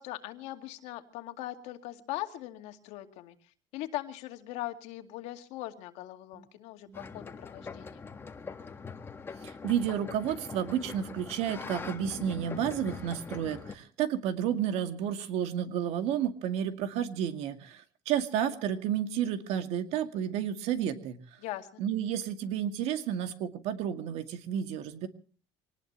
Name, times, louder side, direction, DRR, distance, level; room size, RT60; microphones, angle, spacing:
voice 1, 0.0-8.0 21.4-21.8, left 15 dB, 75° left, 6 dB, 2.3 m, -40 dB
sound 1, 6.9-13.7, left 5 dB, 20° left, 1.6 m, -42 dB
voice 2, 9.4-21.2 21.8-25.1, right 9 dB, 70° right, 7 dB, 2.2 m, -31 dB
25.0 x 19.0 x 3.1 m, 0.41 s
cardioid pair, 135°, 11 cm